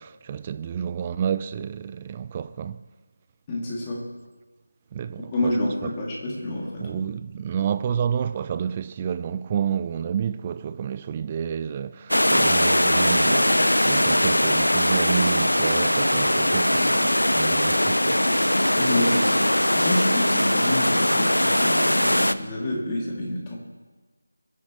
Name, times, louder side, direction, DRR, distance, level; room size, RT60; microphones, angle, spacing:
voice 1, 0.0-2.8 4.9-5.9 6.8-18.2, right 8 dB, 20° right, 0.3 m, -30 dB
voice 2, 3.5-4.0 5.3-7.0 18.8-19.5 19.7-23.6, left 1 dB, 20° left, 2.9 m, -28 dB
sound 1, 12.1-22.3, left 1 dB, 80° left, 0.7 m, -21 dB
22.5 x 12.5 x 3.3 m
figure-of-eight pair, 160°, 0 cm